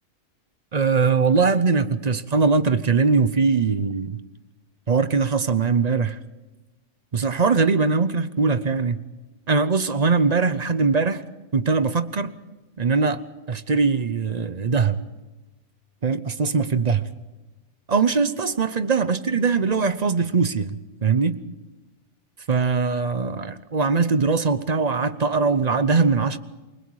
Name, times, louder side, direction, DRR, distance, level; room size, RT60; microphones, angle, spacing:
voice 1, 0.7-4.2 4.9-6.2 7.1-9.0 9.5-11.2 11.5-12.3 12.8-13.2 13.5-15.0 16.0-17.1 17.9-21.4 22.5-26.4, right 4 dB, 40° right, 13 dB, 0.8 m, -21 dB
28.5 x 20.5 x 4.8 m, 1.1 s
omnidirectional pair, 1.2 m